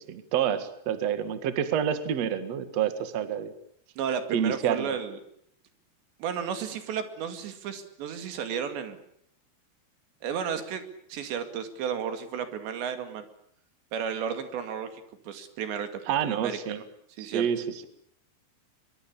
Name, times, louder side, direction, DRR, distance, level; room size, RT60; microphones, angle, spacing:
voice 1, 0.0-3.5 4.3-4.9 16.1-16.8 17.2-17.9, right 9 dB, 50° right, 11 dB, 2.5 m, -28 dB
voice 2, 4.0-5.2 6.2-9.0 10.2-10.8 11.1-13.3 13.9-15.9 16.2-16.8 17.2-17.5, right 7 dB, 85° right, 8 dB, 4.6 m, -33 dB
23.5 x 23.0 x 8.7 m, 0.69 s
omnidirectional pair, 4.9 m